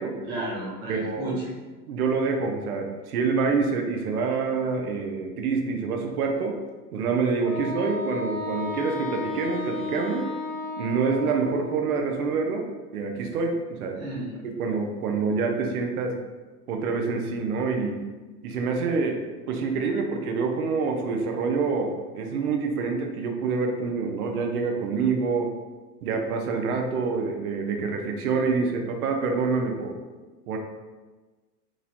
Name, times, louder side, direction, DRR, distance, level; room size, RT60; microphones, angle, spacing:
voice 1, 0.3-1.6 14.0-14.4, right 1 dB, 10° right, -7 dB, 0.3 m, -32 dB
voice 2, 0.9-1.3 1.9-6.6 6.9-10.3 10.8-14.1 14.4-16.1 16.7-18.0 18.4-19.2 19.5-25.5 26.0-30.0 30.5-30.6, right 4 dB, 65° right, 3 dB, 0.6 m, -26 dB
Wind instrument woodwind instrument, 7.4-12.1, left 3 dB, 45° left, 0.6 m, -33 dB
3.0 x 2.6 x 2.4 m, 1.3 s
figure-of-eight pair, 90°, 48 cm